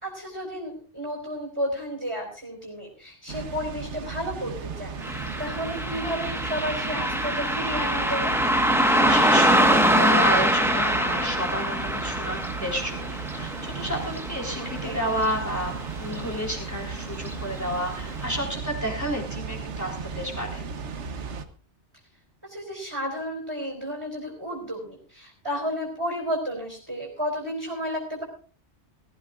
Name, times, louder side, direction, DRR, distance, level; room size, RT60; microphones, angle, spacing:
voice 1, 0.0-8.4 14.8-15.0 22.4-28.2, equal, 20° right, -1 dB, 4.4 m, -32 dB
Water, 3.3-21.4, right 5 dB, 80° right, 1.3 m, -36 dB
Car passing by, 5.0-15.8 16.1-16.2 17.2-17.3 17.8-17.9 18.4-18.5, equal, ahead, 1.3 m, -24 dB
voice 2, 9.0-20.6, equal, 15° left, 0 dB, 3.9 m, -31 dB
20.5 x 14.5 x 2.5 m, 0.38 s
omnidirectional pair, 1.2 m